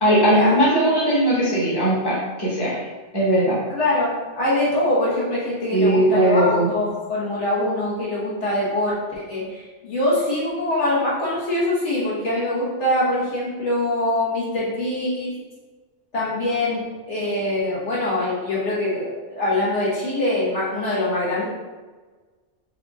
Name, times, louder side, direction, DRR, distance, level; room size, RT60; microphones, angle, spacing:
voice 1, 0.0-2.8 3.1-3.6 5.7-6.7, right 1 dB, 20° left, -7 dB, 1.2 m, -19 dB
voice 2, 3.7-15.3 16.1-21.5, left 1 dB, 75° left, -7 dB, 1.6 m, -23 dB
4.4 x 2.7 x 3.5 m, 1.3 s
omnidirectional pair, 1.2 m